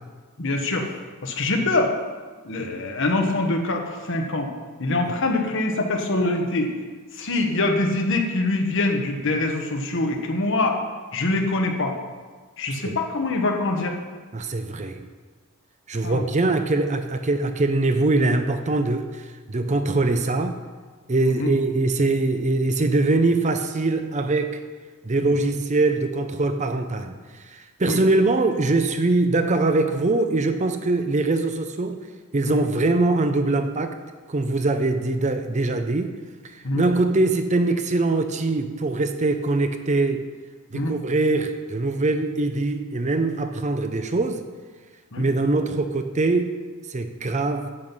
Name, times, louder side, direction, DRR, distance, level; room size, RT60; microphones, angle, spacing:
voice 1, 0.4-0.9 1.2-1.9 2.4-4.5 4.8-6.7 7.1-10.8 11.1-12.0 12.6-14.0 16.0-16.2 21.2-21.5 25.4-25.5 27.9-28.0 32.5-32.6 36.6-36.9 40.7-40.9 45.1-45.2, left 2 dB, 55° left, 3 dB, 1.3 m, -24 dB
voice 2, 14.3-15.1 15.9-20.6 21.1-24.6 25.0-27.2 27.5-32.1 32.3-34.0 34.3-36.2 36.4-40.3 40.7-44.4 45.2-46.6 46.9-47.7, right 2 dB, 30° right, 7 dB, 0.6 m, -22 dB
9.9 x 7.7 x 5.5 m, 1.4 s
head